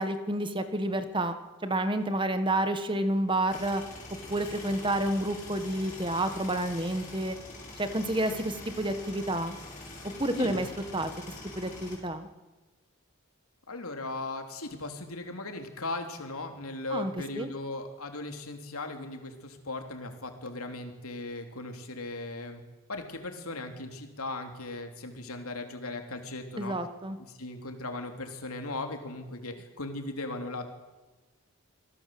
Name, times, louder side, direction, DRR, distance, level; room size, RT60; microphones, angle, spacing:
voice 1, 0.0-1.4 1.6-3.8 4.3-7.4 7.8-9.6 10.2-10.7 10.9-11.1 11.6-12.3 16.9-17.5 26.6-27.2, right 1 dB, 25° right, 9 dB, 1.6 m, -29 dB
sound 1, 3.5-12.0, left 2 dB, 35° left, 7.8 m, -44 dB
voice 2, 13.7-22.6 22.9-26.8 27.3-30.7, left 2 dB, 85° left, 5 dB, 3.4 m, -38 dB
26.5 x 17.5 x 7.8 m, 1.2 s
head